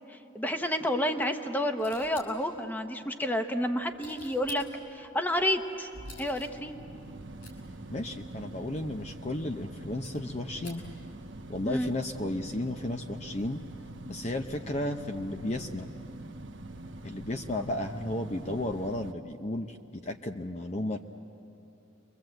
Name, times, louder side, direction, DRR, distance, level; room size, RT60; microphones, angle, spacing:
voice 1, 0.1-4.6 4.9-5.9 6.2-6.8 11.6-11.9, equal, 10° left, 6 dB, 0.9 m, -30 dB
sound 1, 1.8-2.6 3.6-5.0 5.7-7.6 8.0-8.1 8.3-8.4 8.9-9.2 9.8-10.9 11.2-11.6 12.2-13.3 13.6-13.7, left 2 dB, 60° left, 6.8 m, -52 dB
sound 2, 5.4-19.1, right 2 dB, 65° right, 1.0 m, -44 dB
voice 2, 7.9-10.8 11.5-13.6 14.1-15.9 17.0-21.0, left 1 dB, 35° left, 5 dB, 0.6 m, -34 dB
30.0 x 23.5 x 7.8 m, 3.0 s
head